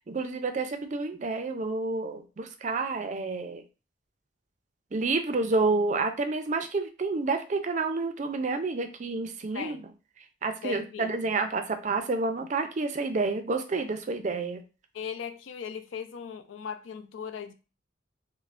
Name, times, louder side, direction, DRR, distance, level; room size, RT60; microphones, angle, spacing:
voice 1, 0.1-3.6 4.9-9.9 10.4-14.6, right 3 dB, 40° right, 7 dB, 0.4 m, -29 dB
voice 2, 10.6-11.1 14.9-17.5, left 7 dB, 85° left, 9 dB, 0.4 m, -38 dB
5.5 x 2.0 x 2.4 m, 0.33 s
head